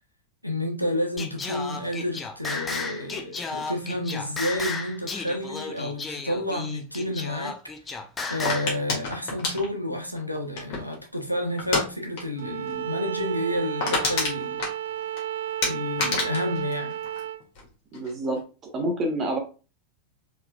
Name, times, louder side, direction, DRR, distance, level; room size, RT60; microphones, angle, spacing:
voice 1, 0.4-7.5 8.3-14.6 15.6-16.9, left 1 dB, 90° left, 0.9 m, -30 dB
Singing, 1.2-8.8, left 4 dB, 15° left, 0.6 m, -34 dB
sound 1, 8.4-11.0 11.6-11.9 12.2-12.4 12.7-12.8 13.2-13.3 13.5-15.2 15.6-17.6 17.9-18.4, left 3 dB, 45° left, 1.8 m, -28 dB
Bowed string instrument, 12.4-17.4, right 11 dB, 60° right, 0.3 m, -32 dB
voice 2, 17.9-18.4 18.7-19.4, right 1 dB, 25° right, 1.3 m, -27 dB
4.5 x 3.7 x 2.5 m
figure-of-eight pair, 90°, 0 cm